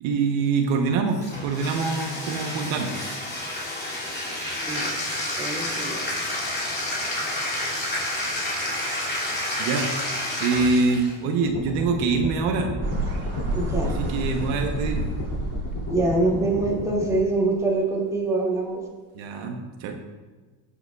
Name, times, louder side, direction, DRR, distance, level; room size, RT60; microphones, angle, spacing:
voice 1, 0.0-3.1 9.6-10.0 10.4-12.8 14.0-15.1 19.1-19.9, right 4 dB, 70° right, 3 dB, 1.1 m, -25 dB
Bathtub (filling or washing), 1.1-11.2, left 1 dB, 20° left, 2.6 m, -29 dB
voice 2, 5.4-6.1 13.5-14.0 15.9-18.8, right 2 dB, 5° right, -4 dB, 2.4 m, -24 dB
sound 1, 11.4-17.2, left 2 dB, 35° left, 3.1 m, -33 dB
sound 2, 12.8-17.2, right 2 dB, 30° right, 2.1 m, -30 dB
15.0 x 7.2 x 2.4 m, 1.3 s
cardioid pair, 130°, 48 cm